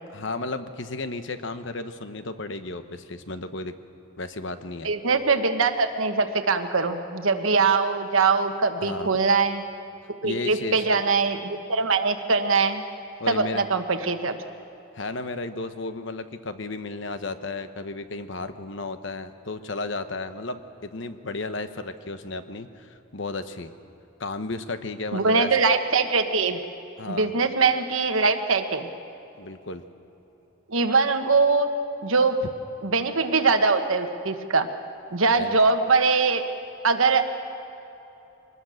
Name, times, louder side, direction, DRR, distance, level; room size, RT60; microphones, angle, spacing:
voice 1, 0.1-3.7 4.2-4.9 8.8-9.1 10.2-10.9 13.2-13.6 14.9-23.7 24.2-25.5 27.0-27.3 29.4-29.8 35.3-35.6, left 3 dB, 60° left, 9 dB, 1.0 m, -33 dB
voice 2, 4.8-9.6 10.2-12.8 13.3-14.4 25.1-26.6 27.1-28.9 30.7-31.7 32.0-32.4 32.8-34.7 35.1-36.4 36.8-37.3, right 4 dB, 75° right, 7 dB, 1.3 m, -22 dB
23.5 x 19.5 x 6.5 m, 2.9 s
head